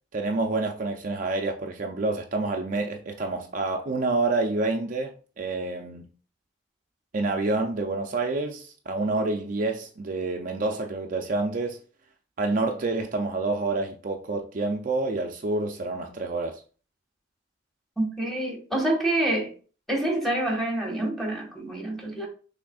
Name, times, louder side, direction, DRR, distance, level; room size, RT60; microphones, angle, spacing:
voice 1, 0.1-6.1 7.1-11.8 12.4-16.6, right 3 dB, 45° right, 0.5 m, -28 dB
voice 2, 18.0-19.5 19.9-22.3, right 1 dB, ahead, 1.4 m, -27 dB
6.0 x 3.5 x 2.4 m
head